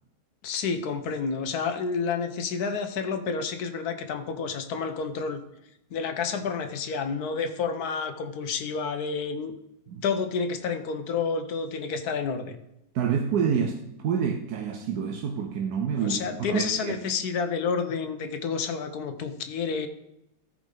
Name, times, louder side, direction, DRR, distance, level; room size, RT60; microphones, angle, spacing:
voice 1, 0.4-5.4 5.9-9.5 10.0-12.6 16.0-19.9, left 5 dB, 80° left, 8 dB, 1.4 m, -29 dB
voice 2, 12.9-16.2 16.5-17.0, right 7 dB, 85° right, 4 dB, 1.2 m, -27 dB
13.5 x 4.9 x 3.8 m, 0.84 s
omnidirectional pair, 1.6 m